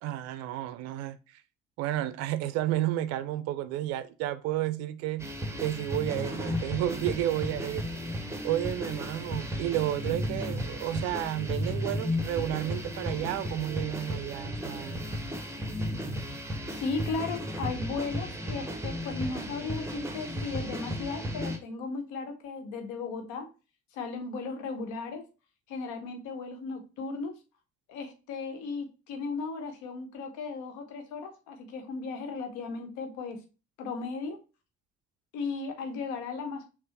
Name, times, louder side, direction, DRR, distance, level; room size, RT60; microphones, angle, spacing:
voice 1, 0.0-1.2 1.8-5.3 5.6-7.9 8.4-15.0, right 13 dB, 50° right, 0.5 m, -31 dB
sound 1, 5.2-21.6, equal, 10° right, 0.9 m, -34 dB
voice 2, 16.7-23.5 23.9-25.2 25.7-27.4 27.9-33.4 33.8-34.4 35.3-36.7, left 4 dB, 60° left, 1.0 m, -36 dB
6.1 x 2.1 x 2.9 m
figure-of-eight pair, 45°, 34 cm